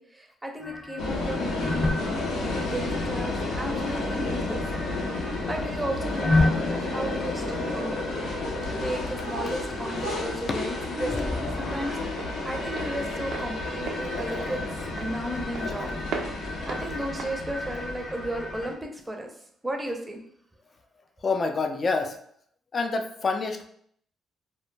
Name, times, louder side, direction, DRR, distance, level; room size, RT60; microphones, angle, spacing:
voice 1, 0.0-4.6 4.9-5.1 5.4-8.0 8.7-12.0 12.4-14.6 15.0-15.9 16.7-19.3 19.6-20.2, right 1 dB, 15° right, 3 dB, 0.5 m, -34 dB
sound 1, 0.6-18.7, left 2 dB, 15° left, 0.8 m, -34 dB
sound 2, 1.0-18.7, left 2 dB, 85° left, 0.5 m, -32 dB
Walk footsteps, 9.9-18.6, right 5 dB, 75° right, 0.3 m, -40 dB
voice 2, 21.2-22.2 22.7-23.7, left 4 dB, 40° left, 5 dB, 0.4 m, -27 dB
2.1 x 2.0 x 3.1 m, 0.65 s
cardioid pair, 90°, 0 cm